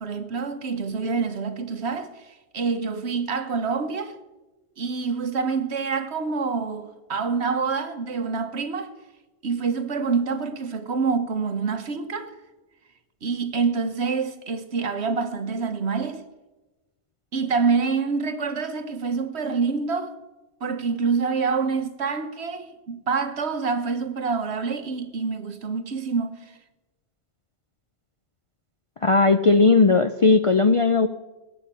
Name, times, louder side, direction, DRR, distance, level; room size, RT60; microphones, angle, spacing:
voice 1, 0.0-4.2 4.8-8.9 9.4-12.3 13.2-16.2 17.3-20.1 20.6-26.5, right 5 dB, 65° right, 1.4 m, -26 dB
voice 2, 29.0-31.1, left 3 dB, 45° left, 0.4 m, -17 dB
16.5 x 7.8 x 8.9 m
omnidirectional pair, 1.2 m